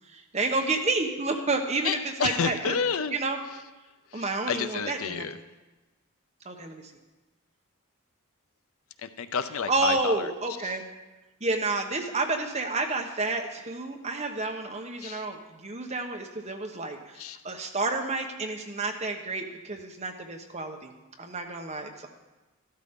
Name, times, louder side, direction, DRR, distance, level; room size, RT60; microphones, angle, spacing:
voice 1, 0.1-2.8 3.1-3.4 4.1-5.2 6.4-6.8 9.7-10.9 11.4-20.9 21.2-22.1, right 3 dB, 30° right, 3 dB, 1.1 m, -30 dB
voice 2, 1.8-3.2 4.1-5.4 9.0-10.3 10.6-10.7 15.0-15.3 17.2-17.4, left 6 dB, 70° left, 11 dB, 0.6 m, -30 dB
13.0 x 12.0 x 3.7 m, 1.1 s
head